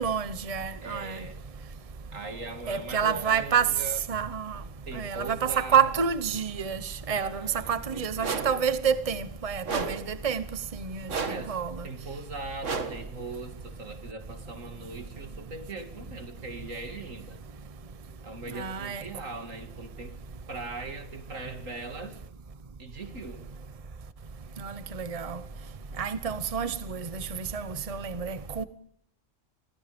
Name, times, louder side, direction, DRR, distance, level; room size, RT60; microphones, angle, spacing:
voice 1, 0.0-1.2 2.7-3.7 4.1-4.6 4.9-10.4 10.7-11.8 18.5-19.0 24.6-25.4 26.0-28.6, right 7 dB, 30° right, 1.1 m, -28 dB
voice 2, 0.8-1.4 2.1-4.0 4.9-5.9 7.1-8.4 11.2-11.6 11.8-17.4 18.2-20.1 20.5-22.2 22.8-23.5, right 3 dB, 90° right, 3.1 m, -40 dB
sound 1, 8.2-8.7 9.7-10.1 11.1-11.6 12.6-13.1, right 4 dB, 70° right, 2.1 m, -32 dB
30.0 x 25.5 x 5.3 m
omnidirectional pair, 1.3 m